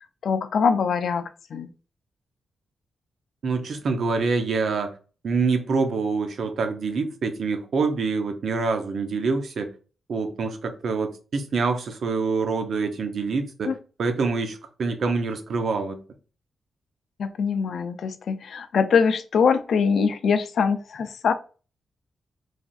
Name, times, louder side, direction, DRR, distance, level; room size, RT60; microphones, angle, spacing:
voice 1, 0.2-1.7 13.6-13.8 17.2-21.3, left 6 dB, 70° left, 0.3 m, -23 dB
voice 2, 3.4-4.9 5.2-9.7 10.1-13.7 14.0-16.0, right 4 dB, 65° right, 0.5 m, -26 dB
3.2 x 2.5 x 2.3 m
cardioid pair, 85°, 0 cm